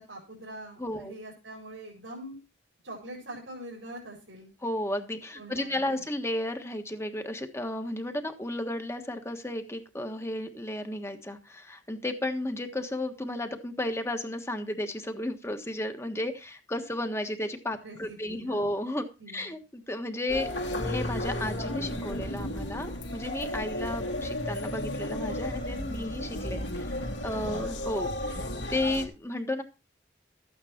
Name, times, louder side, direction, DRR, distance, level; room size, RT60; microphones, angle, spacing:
voice 1, 0.0-2.4 2.8-4.5 5.4-6.0 17.8-18.7 19.2-19.5 27.3-27.8, right 1 dB, 90° right, -3 dB, 4.8 m, -44 dB
voice 2, 0.8-1.1 4.6-20.5 20.8-29.6, left 1 dB, 15° left, 6 dB, 1.4 m, -33 dB
sound 1, 20.3-29.1, left 1 dB, 70° left, 2.4 m, -33 dB
13.5 x 9.1 x 4.4 m, 0.30 s
head